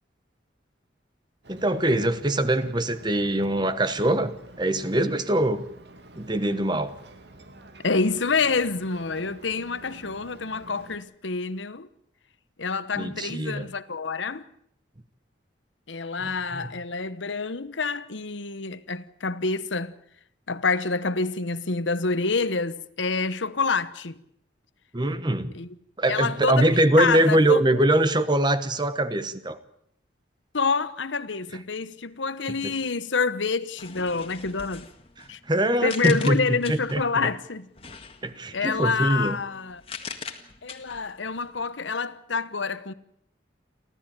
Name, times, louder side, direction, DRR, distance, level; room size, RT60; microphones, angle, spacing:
Ocean, 1.4-11.0, right 2 dB, 65° right, 2.4 m, -48 dB
voice 1, 1.5-4.3 4.6-5.6 6.2-7.0 13.0-13.7 16.2-16.7 24.9-25.5 26.0-29.6 32.6-32.7 35.5-37.3 38.2-39.4, right 1 dB, 25° right, 1.2 m, -23 dB
voice 2, 7.8-11.9 12.6-14.5 15.9-19.9 20.5-24.1 25.5-25.7 26.1-27.8 30.5-34.9 35.3-35.4 35.8-37.7 38.5-39.8 40.6-42.9, left 4 dB, 80° left, 1.1 m, -27 dB
sound 1, 33.8-37.2 37.7-41.7, left 5 dB, 30° left, 1.9 m, -42 dB
29.5 x 13.0 x 8.9 m
head